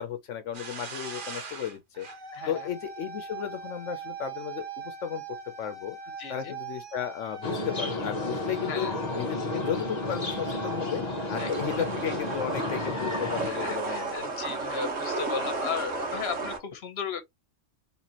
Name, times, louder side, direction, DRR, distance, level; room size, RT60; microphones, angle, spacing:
voice 1, 0.0-2.1 2.5-6.0 6.3-8.9 9.1-11.0 11.3-14.1, left 9 dB, 80° left, 1.0 m, -34 dB
sound 1, 0.5-14.2, right 5 dB, 45° right, 1.1 m, -42 dB
voice 2, 2.3-2.7 6.2-6.5 8.7-9.0 11.4-11.9 13.4-17.2, left 6 dB, 60° left, 1.2 m, -36 dB
sound 2, 7.4-13.5, left 2 dB, 35° left, 1.0 m, -32 dB
sound 3, 11.3-16.6, right 3 dB, 85° right, 1.7 m, -33 dB
4.1 x 3.6 x 2.9 m
omnidirectional pair, 1.3 m